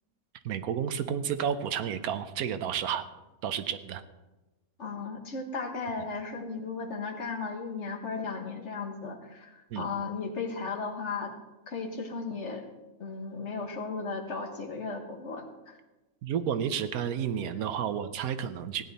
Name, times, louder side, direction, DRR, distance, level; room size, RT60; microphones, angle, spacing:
voice 1, 0.4-3.0 3.4-4.0 9.7-9.9 16.2-18.8, right 8 dB, 85° right, 11 dB, 1.2 m, -31 dB
voice 2, 4.8-11.3 11.7-12.7 13.0-15.8, left 4 dB, 55° left, 4 dB, 1.6 m, -35 dB
16.0 x 10.5 x 4.1 m, 1.1 s
omnidirectional pair, 1.5 m